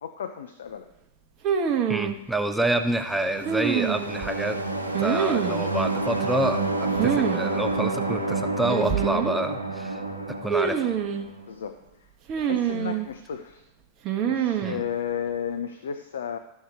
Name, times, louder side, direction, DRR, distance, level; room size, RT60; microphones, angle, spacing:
voice 1, 0.0-0.9 11.5-11.8 12.4-13.6 14.2-16.4, left 8 dB, 65° left, 9 dB, 0.5 m, -33 dB
sound 1, 1.4-2.2 3.5-4.3 4.9-5.7 7.0-7.4 7.7-7.8 8.7-9.4 10.5-11.3 12.3-13.1 14.1-14.8, right 8 dB, 35° right, 0.8 m, -25 dB
voice 2, 1.9-4.6 5.0-6.6 7.0-10.0 10.3-10.9 14.6-14.8, right 1 dB, 5° right, 8 dB, 0.5 m, -28 dB
sound 2, 2.8-11.5, right 3 dB, 85° right, 0.9 m, -29 dB
13.0 x 6.5 x 3.5 m, 0.88 s
figure-of-eight pair, 90°, 0 cm